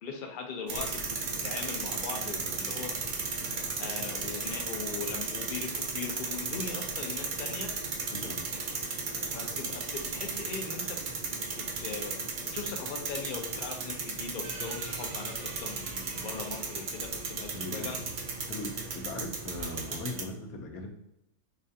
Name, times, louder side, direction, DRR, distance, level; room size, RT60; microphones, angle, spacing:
voice 1, 0.0-3.0 3.8-7.7 9.3-11.0 11.3-12.2 12.5-18.0, left 5 dB, 60° left, 2 dB, 0.5 m, -40 dB
sound 1, 0.7-20.2, right 4 dB, 85° right, 0.4 m, -35 dB
voice 2, 8.1-8.4 17.5-18.1 18.5-20.9, left 2 dB, 75° left, 3 dB, 1.1 m, -39 dB
sound 2, 14.4-20.0, right 3 dB, 65° right, 0.9 m, -47 dB
4.2 x 2.4 x 2.6 m, 0.82 s
omnidirectional pair, 1.5 m